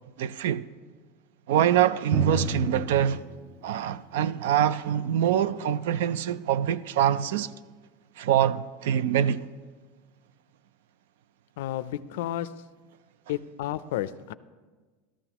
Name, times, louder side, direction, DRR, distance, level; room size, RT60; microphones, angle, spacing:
voice 1, 0.2-0.6 1.5-3.2 3.6-7.5 8.2-9.4, right 10 dB, 80° right, 0.4 m, -24 dB
Drum, 2.1-5.6, right 2 dB, 25° right, 0.6 m, -34 dB
voice 2, 11.6-12.5 13.3-14.3, left 13 dB, 75° left, 0.4 m, -31 dB
13.5 x 12.5 x 3.0 m
supercardioid pair, 175°, 0 cm